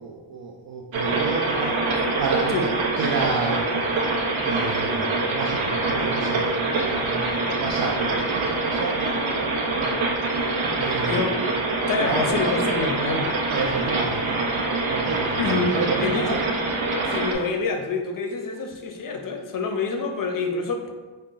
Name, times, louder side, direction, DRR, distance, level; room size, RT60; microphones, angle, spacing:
voice 1, 0.0-2.7 3.0-3.7 4.4-11.3 11.7-12.5 13.2-16.4, right 4 dB, 50° right, 0 dB, 0.5 m, -31 dB
sound 1, 0.9-17.3, right 3 dB, 85° right, 0.7 m, -25 dB
voice 2, 11.9-13.4 15.4-16.4 17.0-20.9, left 4 dB, 45° left, 4 dB, 0.6 m, -27 dB
3.7 x 2.2 x 3.8 m, 1.3 s
cardioid pair, 80°, 46 cm